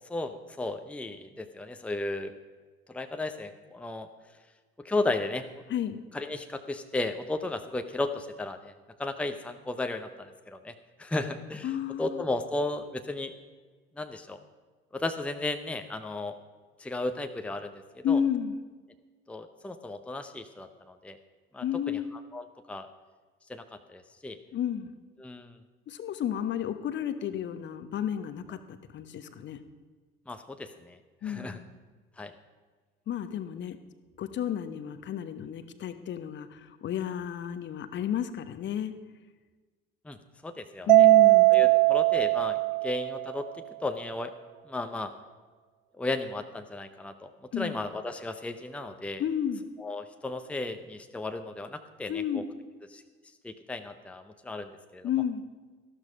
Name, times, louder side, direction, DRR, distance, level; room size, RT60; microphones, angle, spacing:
voice 1, 0.0-2.4 2.9-4.1 4.8-5.4 6.1-8.7 9.0-10.7 11.0-11.7 12.0-13.3 14.0-14.4 14.9-16.4 16.8-18.2 19.3-21.2 21.5-22.0 22.3-22.9 23.5-24.4 25.2-25.6 30.3-31.0 31.2-31.6 32.2-32.3 40.0-40.2 40.4-41.1 41.5-43.5 43.8-44.3 44.7-45.1 46.0-47.3 47.6-49.2 49.8-52.4 52.9-53.0 53.4-55.1, left 2 dB, 5° left, 7 dB, 0.8 m, -34 dB
voice 2, 5.7-6.0 11.6-12.3 18.0-18.6 21.6-22.1 24.5-24.9 25.9-29.6 31.2-31.7 33.1-33.8 34.2-38.9 40.9-41.5 47.5-47.8 49.2-49.7 52.1-52.5 55.0-55.4, left 9 dB, 40° left, 11 dB, 0.9 m, -32 dB
Mallet percussion, 40.9-43.3, right 23 dB, 70° right, 0.6 m, -20 dB
13.5 x 12.5 x 5.0 m, 1.4 s
figure-of-eight pair, 55°, 29 cm